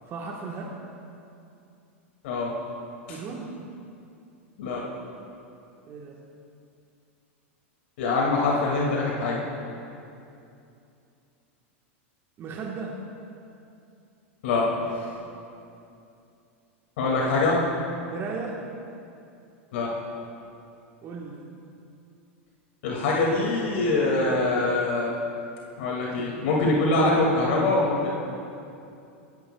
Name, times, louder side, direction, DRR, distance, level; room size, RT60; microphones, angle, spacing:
voice 1, 0.1-0.8 3.1-3.5 5.9-6.2 12.4-13.0 18.0-18.6 21.0-21.4, right 4 dB, 35° right, -1 dB, 1.2 m, -36 dB
voice 2, 8.0-9.4 14.4-14.9 17.0-17.6 19.7-19.9 22.8-25.2 25.8-28.1, left 2 dB, 70° left, -3 dB, 2.1 m, -24 dB
22.0 x 10.5 x 2.3 m, 2.6 s
hypercardioid pair, 105°, 7 cm